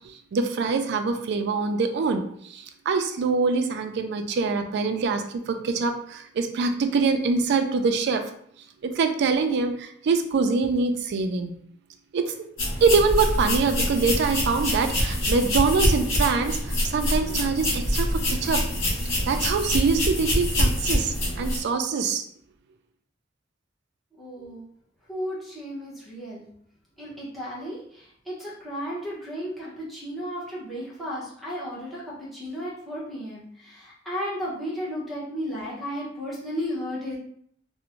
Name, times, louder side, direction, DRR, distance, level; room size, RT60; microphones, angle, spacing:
voice 1, 0.3-8.3 8.8-11.5 12.1-12.2 12.8-18.6 19.0-22.2, right 4 dB, 60° right, 7 dB, 0.3 m, -24 dB
sound 1, 12.6-21.6, left 1 dB, 70° left, 0.7 m, -25 dB
voice 2, 24.2-24.6 25.1-26.5 27.0-37.2, equal, ahead, -7 dB, 0.7 m, -34 dB
2.5 x 2.1 x 2.8 m, 0.65 s
head